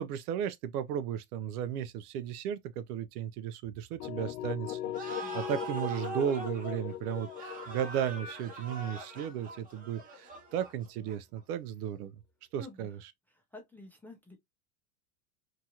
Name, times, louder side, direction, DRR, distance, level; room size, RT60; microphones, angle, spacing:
voice 1, 0.0-12.2 12.5-13.0, right 9 dB, 75° right, 0.6 m, -35 dB
sound 1, 4.0-9.9, left 12 dB, 60° left, 0.7 m, -40 dB
sound 2, 4.9-11.4, right 3 dB, 20° right, 0.7 m, -43 dB
voice 2, 5.1-5.5 12.6-13.0 13.3-14.4, left 1 dB, 5° left, 0.4 m, -50 dB
2.8 x 2.4 x 2.8 m
supercardioid pair, 130°, 45 cm